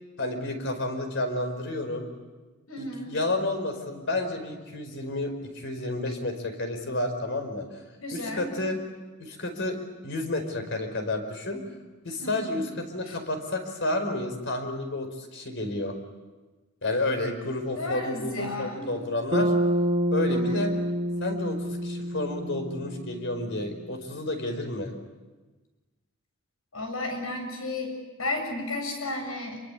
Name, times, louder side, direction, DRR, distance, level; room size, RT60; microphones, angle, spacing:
voice 1, 0.2-2.1 2.8-7.8 8.1-8.8 9.2-9.8 10.0-11.6 12.0-15.9 16.8-19.5 20.1-20.7 21.2-24.9, left 2 dB, 60° left, 6 dB, 4.9 m, -31 dB
voice 2, 2.7-3.1 8.0-8.5 12.2-12.5 13.1-13.2 17.8-18.9 20.3-20.6 26.7-29.6, left 2 dB, 85° left, 4 dB, 7.7 m, -33 dB
Bass guitar, 19.3-23.7, equal, 30° right, 1.4 m, -27 dB
28.0 x 24.0 x 8.5 m, 1.2 s
head